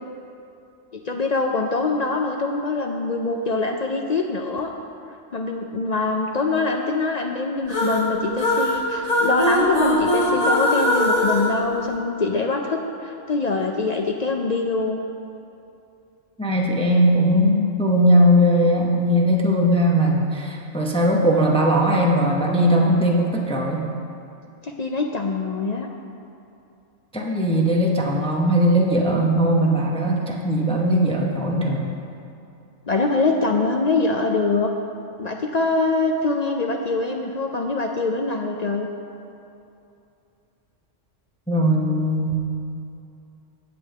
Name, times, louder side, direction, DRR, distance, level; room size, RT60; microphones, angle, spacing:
voice 1, 0.9-4.7 5.3-15.0 24.6-25.9 32.9-34.7 35.2-38.9, left 3 dB, 60° left, 2 dB, 0.4 m, -24 dB
sound 1, 7.7-12.4, left 1 dB, 20° left, 1.7 m, -21 dB
voice 2, 16.4-23.9 27.1-32.0 41.5-42.4, equal, 5° left, -1 dB, 0.6 m, -19 dB
8.4 x 5.2 x 7.7 m, 2.7 s
omnidirectional pair, 1.3 m